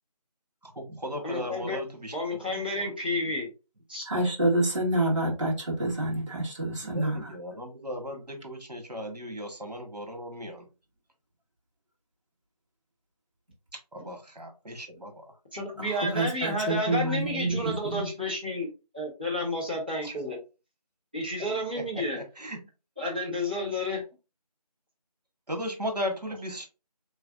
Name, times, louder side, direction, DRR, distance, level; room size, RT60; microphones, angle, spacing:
voice 1, 0.6-2.9 6.8-10.7 13.9-15.3 20.0-20.2 21.7-21.8 22.1-22.6 25.5-26.7, equal, 80° right, 4 dB, 1.5 m, -37 dB
voice 2, 1.2-1.8 2.1-3.5 3.9-4.1 14.0-14.1 15.5-20.4 21.1-22.2 23.0-24.0, left 1 dB, 15° right, -7 dB, 0.8 m, -31 dB
voice 3, 4.1-7.3 16.1-18.0, right 1 dB, 50° right, -4 dB, 1.6 m, -27 dB
3.4 x 3.2 x 2.5 m, 0.29 s
figure-of-eight pair, 170°, 21 cm